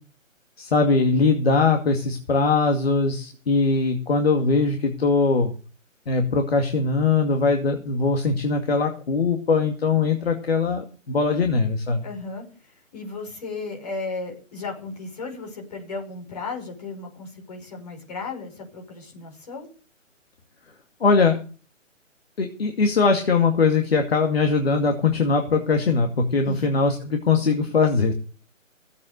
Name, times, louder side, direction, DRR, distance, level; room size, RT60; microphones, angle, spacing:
voice 1, 0.6-5.5 6.1-12.0 21.0-21.4 22.4-28.1, left 4 dB, 50° left, 4 dB, 2.3 m, -21 dB
voice 2, 12.0-19.7 26.4-26.6, left 3 dB, 30° left, 2 dB, 5.8 m, -35 dB
16.5 x 8.4 x 6.7 m, 0.38 s
hypercardioid pair, 175°, 39 cm